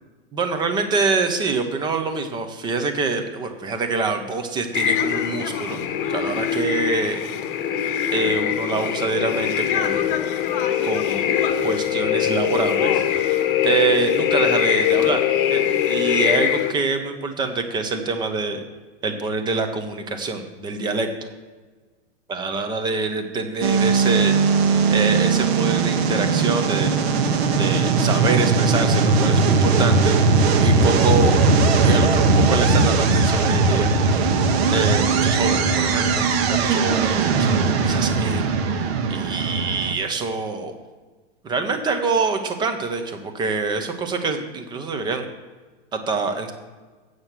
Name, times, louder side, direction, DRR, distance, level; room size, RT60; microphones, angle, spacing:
voice 1, 0.3-5.8 6.1-7.2 8.1-10.1 10.8-11.4 11.6-13.4 13.6-15.2 15.5-18.6 19.0-21.1 22.3-24.3 24.9-27.0 27.6-30.2 30.6-31.4 31.8-34.3 34.7-40.7 41.4-45.3 45.9-46.5, right 4 dB, 15° right, 7 dB, 0.6 m, -25 dB
sound 1, 4.7-16.7, left 10 dB, 50° left, 1.0 m, -22 dB
sound 2, 23.6-39.9, right 4 dB, 60° right, 1.2 m, -19 dB
7.9 x 6.4 x 7.2 m, 1.3 s
supercardioid pair, 155°, 35 cm